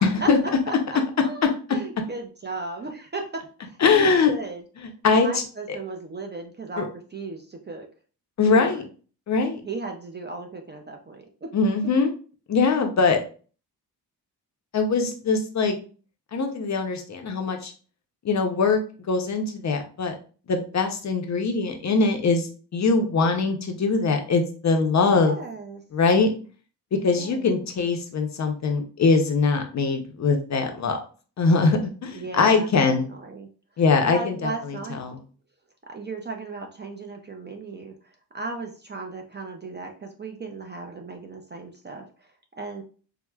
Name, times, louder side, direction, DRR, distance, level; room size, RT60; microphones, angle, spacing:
voice 1, 0.0-0.4 3.8-4.3 5.0-5.4 6.8-6.9 8.4-8.8 9.3-9.6 11.5-12.1 12.5-13.2 14.7-15.8 16.3-17.7 18.2-18.8 19.1-20.2 20.5-25.4 25.9-26.3 27.0-31.0 31.4-33.1 33.8-35.2, left 4 dB, 45° left, 5 dB, 0.5 m, -22 dB
voice 2, 0.7-7.9 8.5-8.8 9.6-11.5 25.1-25.8 27.1-27.5 32.1-33.5 34.0-35.0 35.9-42.8, right 3 dB, 30° right, 3 dB, 0.3 m, -36 dB
4.5 x 2.0 x 2.2 m, 0.39 s
wide cardioid pair, 155°, 41 cm